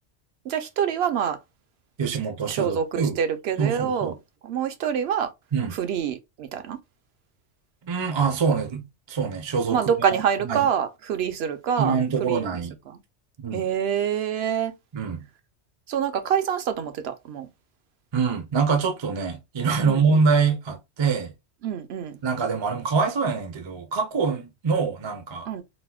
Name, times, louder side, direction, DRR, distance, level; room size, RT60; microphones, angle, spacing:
voice 1, 0.4-1.4 2.1-2.2 2.5-4.1 4.4-5.3 5.7-6.8 9.7-12.6 12.9-13.0 13.5-14.7 15.9-17.5 19.8-20.2 21.6-22.2 25.4-25.6, right 8 dB, 70° right, 0.8 m, -26 dB
voice 2, 2.0-3.2 3.6-4.2 5.5-5.7 7.8-9.9 10.5-10.7 11.8-12.7 13.4-13.6 14.9-15.2 18.1-21.3 22.2-25.5, right 5 dB, 35° right, 0.5 m, -25 dB
4.1 x 2.1 x 2.3 m
omnidirectional pair, 1.2 m